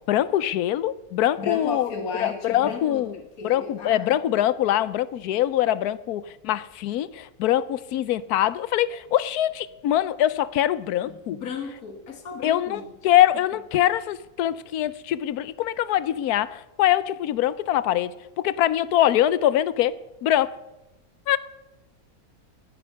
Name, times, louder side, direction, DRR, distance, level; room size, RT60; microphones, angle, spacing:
voice 1, 0.1-1.9 2.2-3.1 3.4-11.4 12.4-19.9 20.2-20.5 21.3-21.4, left 12 dB, 85° left, 18 dB, 1.2 m, -23 dB
voice 2, 1.4-3.0 3.4-4.2 11.0-12.9, left 5 dB, 70° left, 5 dB, 2.1 m, -34 dB
18.5 x 9.5 x 5.8 m, 1.0 s
omnidirectional pair, 1.6 m